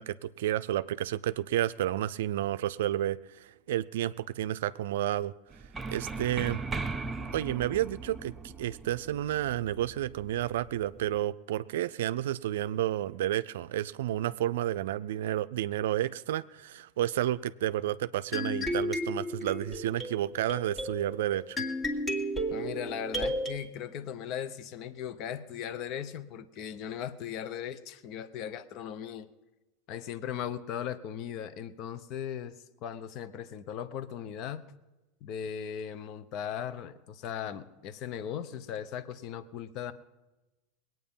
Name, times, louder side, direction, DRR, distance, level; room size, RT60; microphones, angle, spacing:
voice 1, 0.0-5.3 5.9-6.6 7.3-21.6, right 13 dB, 75° right, 14 dB, 0.4 m, -31 dB
sound 1, 5.5-11.2, right 3 dB, 20° right, 0.7 m, -39 dB
sound 2, 18.3-23.6, equal, 20° left, 1.8 m, -33 dB
voice 2, 22.5-29.3 29.9-34.7 35.2-39.9, left 9 dB, 50° left, 14 dB, 0.8 m, -38 dB
20.5 x 9.2 x 5.5 m, 1.1 s
hypercardioid pair, 110°, 0 cm